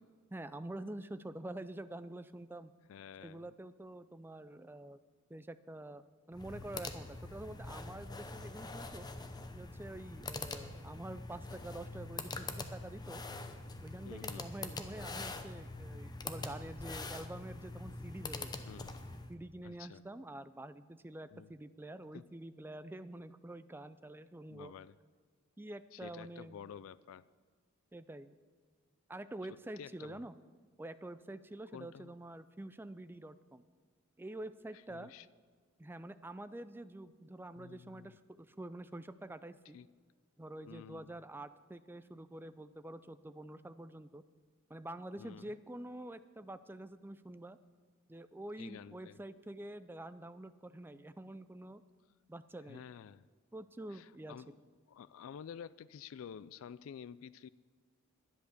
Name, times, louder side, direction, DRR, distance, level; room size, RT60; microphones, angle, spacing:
voice 1, 0.3-2.7 3.2-5.0 5.3-9.1 9.5-13.2 13.8-18.5 19.3-24.7 25.6-26.6 27.9-28.4 29.1-30.3 30.8-33.7 34.2-35.1 35.8-39.8 40.4-44.2 44.7-47.6 48.1-51.8 52.3-52.8 53.5-54.4, right 1 dB, 10° right, 12 dB, 0.4 m, -47 dB
voice 2, 2.9-3.5 14.0-14.5 18.7-19.0 19.6-20.0 21.3-21.5 22.1-22.2 24.5-24.9 25.9-27.2 29.8-30.2 31.7-32.2 34.7-35.3 37.6-38.2 39.7-39.9 40.7-41.2 45.2-45.5 48.6-49.2 52.7-53.2 53.9-54.6 54.9-57.5, left 7 dB, 70° left, 17 dB, 0.3 m, -50 dB
sound 1, 6.3-19.3, left 3 dB, 20° left, 0.7 m, -44 dB
11.0 x 10.5 x 6.6 m, 1.5 s
head